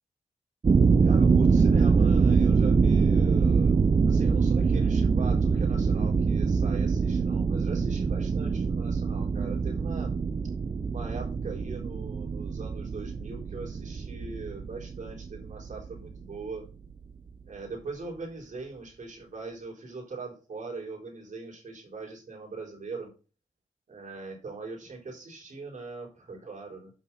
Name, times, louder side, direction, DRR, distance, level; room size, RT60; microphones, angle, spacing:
sound 1, 0.6-16.4, right 5 dB, 35° right, 0.5 m, -24 dB
voice 1, 1.0-10.1 10.9-16.6 17.5-23.1 23.9-26.9, right 3 dB, 75° right, -1 dB, 4.2 m, -41 dB
9.0 x 5.9 x 4.2 m, 0.34 s
wide cardioid pair, 80°, 13 cm